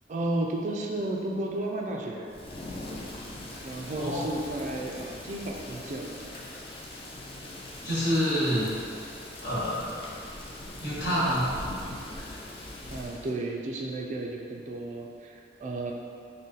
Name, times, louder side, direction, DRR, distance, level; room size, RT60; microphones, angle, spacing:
voice 1, 0.1-2.3 3.6-6.2 12.9-15.9, right 2 dB, 40° right, 0 dB, 0.3 m, -33 dB
Thunder / Rain, 2.3-13.3, left 1 dB, 30° left, 0.4 m, -41 dB
voice 2, 3.9-4.2 7.8-8.7 9.4-10.1 10.8-11.6, equal, 65° left, -10 dB, 1.3 m, -27 dB
3.8 x 2.1 x 3.9 m, 2.4 s
head